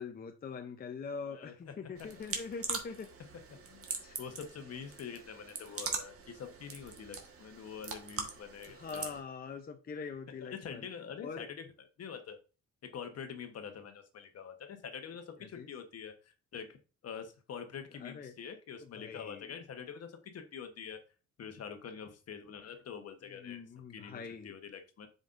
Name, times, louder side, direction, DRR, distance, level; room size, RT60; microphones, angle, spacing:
voice 1, 0.0-3.1 4.0-4.5 8.6-10.9 11.2-11.5 15.4-15.7 17.9-18.3 18.8-19.6 23.3-24.5, left 5 dB, 30° left, 0.6 m, -43 dB
sound 1, 2.0-9.2, right 5 dB, 50° right, 1.4 m, -42 dB
voice 2, 4.2-9.1 10.4-11.6 12.0-12.4 12.8-16.8 17.0-21.0 21.4-23.6 23.9-25.1, left 7 dB, 55° left, 1.1 m, -45 dB
7.7 x 5.1 x 2.5 m
cardioid pair, 90°, 30 cm